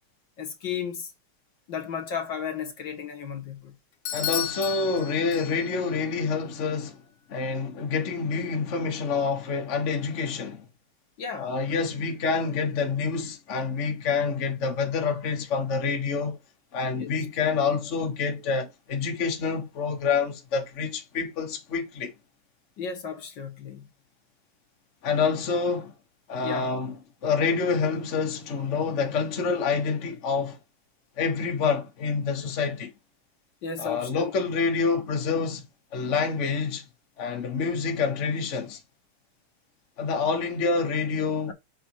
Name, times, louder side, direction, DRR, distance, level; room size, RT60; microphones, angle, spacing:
voice 1, 0.4-1.1 1.7-3.8 11.2-11.5 16.9-17.1 22.8-23.9 26.4-26.7 33.6-34.3, left 7 dB, 65° left, 2.1 m, -34 dB
Bell / Doorbell, 4.1-5.9, left 10 dB, 85° left, 1.8 m, -33 dB
voice 2, 4.1-7.0 7.3-10.7 11.4-16.4 16.7-22.1 25.0-25.9 26.3-26.9 27.2-30.6 31.2-32.9 33.8-36.9 37.2-38.8 40.0-41.5, left 5 dB, 40° left, 1.4 m, -27 dB
7.2 x 3.5 x 4.6 m
omnidirectional pair, 2.2 m